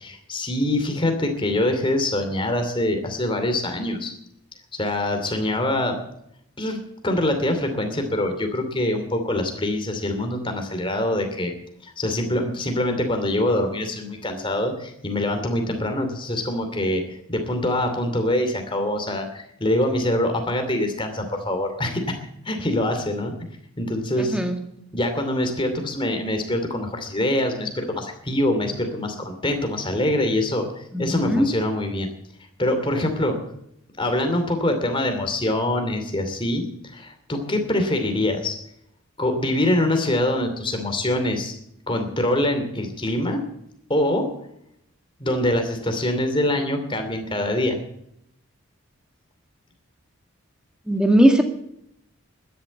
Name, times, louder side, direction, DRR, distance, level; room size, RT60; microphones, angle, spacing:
voice 1, 0.0-4.1 4.7-6.0 6.6-6.8 7.0-11.5 11.8-22.2 22.4-23.3 23.8-24.4 24.9-32.1 32.6-33.4 34.0-36.6 36.9-38.6 39.2-41.5 41.9-43.4 43.9-44.3 45.2-47.8, left 1 dB, 25° left, 5 dB, 2.6 m, -24 dB
voice 2, 24.2-24.6 30.9-31.5 50.9-51.4, equal, 5° right, 4 dB, 1.9 m, -18 dB
13.0 x 10.5 x 9.1 m, 0.76 s
head